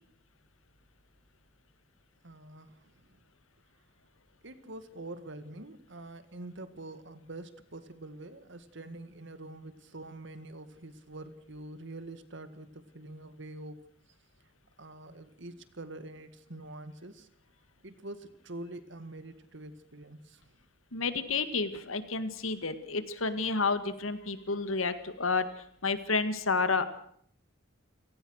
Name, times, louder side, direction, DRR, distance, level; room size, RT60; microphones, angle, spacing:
voice 1, 2.2-2.9 4.4-13.8 14.8-17.3 17.8-20.4, right 2 dB, 60° right, 11 dB, 2.0 m, -45 dB
voice 2, 20.9-25.5 25.8-26.9, left 4 dB, 85° left, 11 dB, 2.0 m, -30 dB
30.0 x 18.0 x 6.5 m, 0.64 s
head